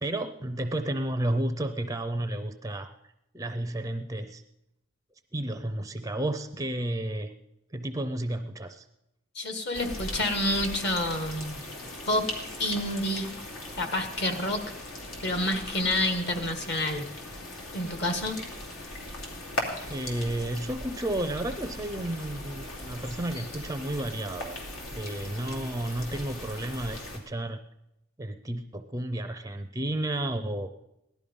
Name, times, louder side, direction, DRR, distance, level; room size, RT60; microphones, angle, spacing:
voice 1, 0.0-2.9 3.3-4.4 5.3-7.3 7.7-8.9 19.9-24.6 24.9-27.6 28.2-30.7, right 1 dB, 15° right, 8 dB, 0.5 m, -32 dB
voice 2, 9.3-11.6 12.1-12.2 12.6-13.3 13.8-14.6 15.2-17.0 17.7-18.4, left 1 dB, 50° left, 6 dB, 1.7 m, -28 dB
sound 1, 9.7-27.2, left 1 dB, 80° left, 2.9 m, -39 dB
17.0 x 11.5 x 5.4 m, 0.87 s
head